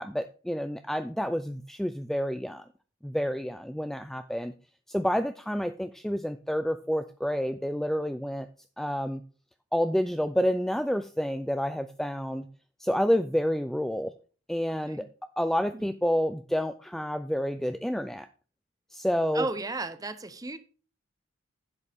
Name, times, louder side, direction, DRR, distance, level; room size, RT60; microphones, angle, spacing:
voice 1, 0.0-2.6 3.0-4.5 4.9-8.5 8.8-9.2 9.7-12.5 12.8-14.1 14.5-15.1 15.4-18.3 18.9-19.5, equal, ahead, 0.3 m, -29 dB
voice 2, 19.3-20.6, right 2 dB, 20° right, 0.7 m, -34 dB
10.5 x 8.0 x 3.5 m
head